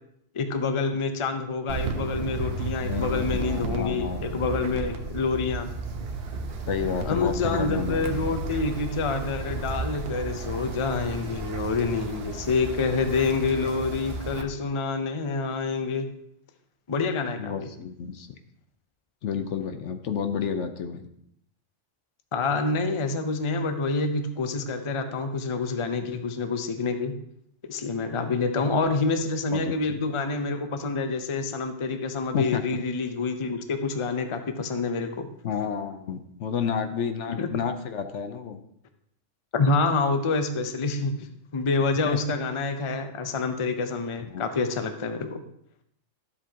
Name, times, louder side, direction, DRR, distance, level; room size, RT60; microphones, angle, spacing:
voice 1, 0.3-5.7 7.0-16.1 16.9-17.7 22.3-27.2 27.6-35.3 37.4-37.5 39.5-45.4, left 4 dB, 30° left, 7 dB, 0.6 m, -27 dB
Wind, 1.7-14.4, right 3 dB, 55° right, 1.1 m, -33 dB
voice 2, 2.8-4.4 6.7-8.3 17.4-18.3 19.2-21.0 29.5-30.0 32.3-32.6 35.4-38.6 42.1-42.2 44.3-44.4, left 7 dB, 70° left, 8 dB, 1.1 m, -30 dB
12.5 x 7.8 x 2.9 m, 0.71 s
omnidirectional pair, 1.3 m